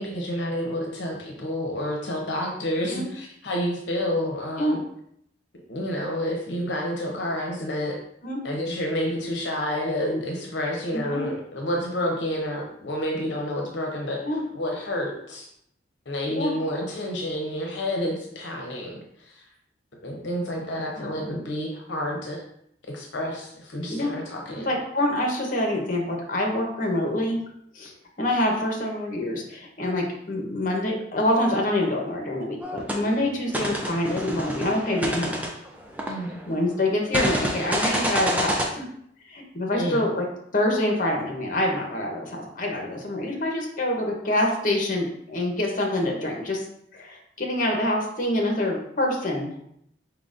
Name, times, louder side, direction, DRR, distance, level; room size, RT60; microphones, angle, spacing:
voice 1, 0.0-4.8 5.7-8.0 8.4-14.2 14.5-15.5 16.1-19.4 20.0-22.4 22.9-24.7 36.1-36.4 39.8-40.1, left 1 dB, 70° left, 0 dB, 0.7 m, -29 dB
voice 2, 10.9-11.3 14.2-14.4 16.3-16.5 21.0-21.3 23.9-24.1 24.6-27.4 27.7-35.4 36.5-38.9 39.3-40.3 40.5-46.6 46.9-49.5, left 1 dB, 45° left, 0 dB, 0.9 m, -26 dB
sound 1, 32.6-33.0 33.5-36.5 37.1-38.7, equal, 10° right, 0.5 m, -28 dB
4.5 x 3.8 x 2.5 m, 0.71 s
head